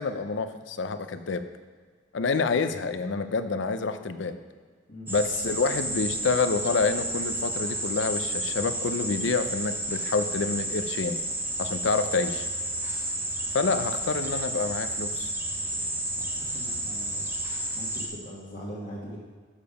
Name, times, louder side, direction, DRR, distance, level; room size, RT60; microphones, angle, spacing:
voice 1, 0.0-1.4 2.1-4.4 5.1-11.2 11.6-12.5 13.5-15.3, left 4 dB, 70° left, 10 dB, 0.5 m, -28 dB
sound 1, 5.1-18.1, right 1 dB, 10° right, 1.0 m, -31 dB
voice 2, 16.2-17.3 17.7-19.2, equal, 45° left, -7 dB, 1.6 m, -41 dB
7.1 x 6.8 x 5.2 m, 1.5 s
head